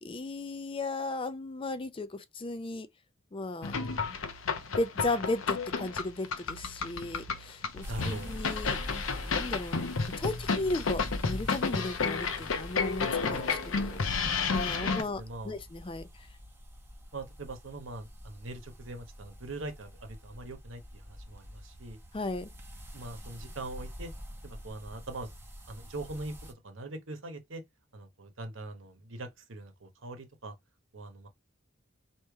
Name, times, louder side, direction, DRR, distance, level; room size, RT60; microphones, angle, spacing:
voice 1, 0.0-2.9 3.3-3.8 4.1-4.2 4.8-9.9 10.2-14.0 14.4-16.1 22.1-22.5, left 2 dB, 25° left, 0.4 m, -35 dB
sound 1, 3.6-15.0, left 5 dB, 85° left, 0.7 m, -32 dB
sound 2, 7.8-26.5, equal, 10° right, 0.9 m, -45 dB
voice 2, 7.9-8.3 14.7-15.6 17.1-22.0 22.9-24.1 24.4-25.3 25.7-27.6 27.9-30.5 30.9-31.3, right 2 dB, 75° right, 1.0 m, -42 dB
3.2 x 2.9 x 4.6 m
head